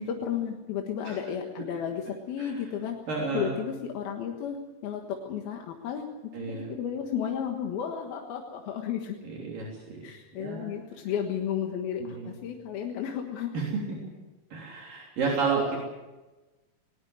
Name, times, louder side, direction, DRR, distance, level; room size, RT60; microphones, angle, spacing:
voice 1, 0.0-3.0 3.3-6.1 6.4-9.2 10.0-13.6, left 8 dB, 80° left, 2 dB, 3.5 m, -33 dB
voice 2, 3.1-3.5 6.3-6.7 9.2-10.1 10.4-10.7 12.0-12.3 13.5-13.7 14.5-15.8, right 4 dB, 65° right, -2 dB, 5.0 m, -31 dB
20.5 x 19.0 x 8.0 m, 1.1 s
omnidirectional pair, 4.3 m